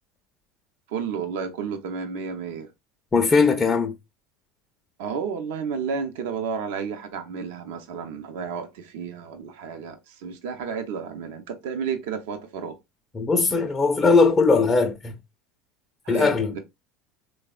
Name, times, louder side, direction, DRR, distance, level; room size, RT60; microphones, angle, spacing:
voice 1, 0.9-2.7 5.0-12.8 16.0-16.6, right 6 dB, 70° right, 0.5 m, -32 dB
voice 2, 3.1-3.9 13.1-15.1 16.1-16.6, left 4 dB, 25° left, 0.4 m, -19 dB
3.3 x 2.0 x 2.3 m
hypercardioid pair, 80°, 0 cm